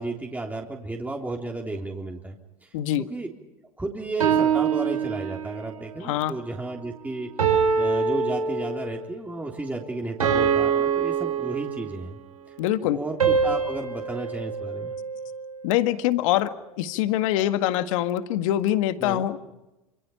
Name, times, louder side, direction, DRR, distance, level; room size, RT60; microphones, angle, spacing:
voice 1, 0.0-2.4 2.6-2.7 3.0-3.3 3.8-7.3 7.8-12.2 12.8-14.9 19.0-19.2, right 2 dB, 10° right, 0 dB, 3.5 m, -33 dB
voice 2, 2.7-3.1 6.0-6.3 12.6-13.0 15.6-19.4, left 13 dB, 70° left, 10 dB, 1.8 m, -24 dB
sound 1, 4.2-5.7 7.4-9.0 10.2-12.1 13.2-15.5, right 6 dB, 90° right, 5.1 m, -24 dB
27.0 x 26.0 x 5.7 m, 1.0 s
hypercardioid pair, 90°, 18 cm